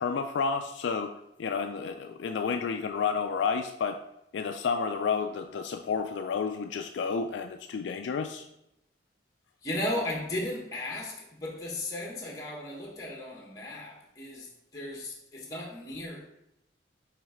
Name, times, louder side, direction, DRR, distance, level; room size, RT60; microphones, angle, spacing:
voice 1, 0.0-4.0 4.3-8.5, left 5 dB, 75° left, 6 dB, 0.3 m, -31 dB
voice 2, 9.6-14.5 14.7-16.3, left 1 dB, 20° left, -2 dB, 1.0 m, -35 dB
6.1 x 3.2 x 4.9 m, 0.82 s
head